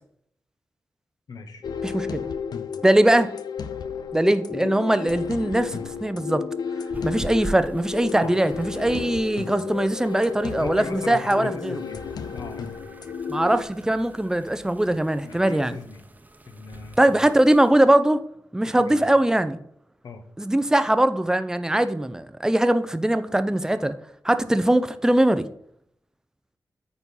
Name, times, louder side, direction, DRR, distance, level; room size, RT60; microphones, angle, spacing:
voice 1, 1.3-1.6 8.2-8.3 10.6-12.0 12.3-12.6 15.2-16.0 16.5-17.3 18.7-19.0 20.0-20.2, left 4 dB, 70° left, 8 dB, 1.1 m, -38 dB
sound 1, 1.6-13.6, left 6 dB, 90° left, 0.6 m, -33 dB
voice 2, 1.8-2.3 2.8-3.3 4.1-6.4 7.0-11.7 13.3-15.8 17.0-18.2 18.5-19.6 20.4-23.9 24.2-25.5, right 1 dB, 10° right, 11 dB, 0.5 m, -21 dB
sound 2, 6.9-17.7, right 2 dB, 25° right, 0.9 m, -44 dB
9.3 x 4.2 x 5.4 m, 0.69 s
wide cardioid pair, 115°, 7 cm